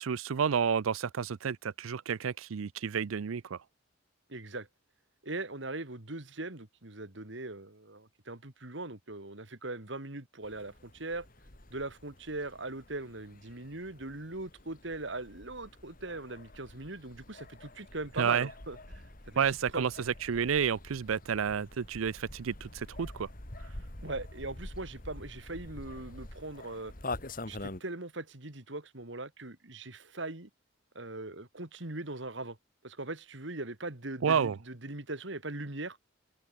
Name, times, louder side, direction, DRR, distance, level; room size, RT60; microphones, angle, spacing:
voice 1, 0.0-3.6 18.2-18.5 19.4-19.9 20.3-23.3 34.2-34.6, right 7 dB, 90° right, 0.5 m, -30 dB
voice 2, 4.3-4.7 5.2-11.3 11.7-19.4 19.7-19.8 24.0-26.9 27.5-30.5 30.9-32.6 32.8-36.0, right 2 dB, 60° right, 2.5 m, -40 dB
sound 1, 10.4-27.8, left 2 dB, 45° left, 3.0 m, -46 dB
open air
head